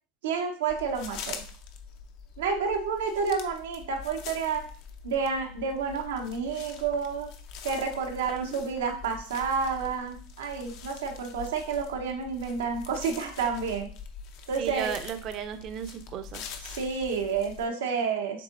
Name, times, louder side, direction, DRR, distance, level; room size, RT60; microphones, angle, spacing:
voice 1, 0.2-1.4 2.4-4.6 5.0-7.3 7.6-13.9 14.5-14.9 16.6-18.4, right 5 dB, 85° right, 3 dB, 1.0 m, -30 dB
sound 1, 0.7-17.7, left 6 dB, 60° left, 0.7 m, -44 dB
voice 2, 8.3-8.6 14.6-16.4, right 8 dB, 45° right, 10 dB, 0.6 m, -35 dB
7.3 x 2.8 x 2.6 m, 0.42 s
supercardioid pair, 115°, 0 cm